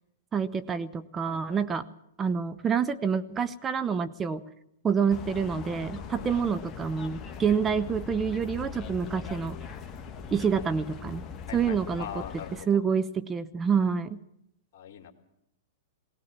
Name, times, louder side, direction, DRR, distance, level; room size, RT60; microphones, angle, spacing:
voice 1, 0.3-1.9 2.2-4.4 4.8-9.6 10.3-11.2 11.5-12.0 12.7-14.2, right 6 dB, 20° right, 11 dB, 0.8 m, -27 dB
voice 2, 1.2-1.7 6.2-6.4 10.4-10.7 11.5-12.8 14.7-15.1, left 9 dB, 55° left, 5 dB, 2.8 m, -43 dB
sound 1, 5.1-12.6, left 6 dB, 30° left, 1.5 m, -40 dB
19.5 x 18.5 x 7.4 m, 0.78 s
hypercardioid pair, 110°, 0 cm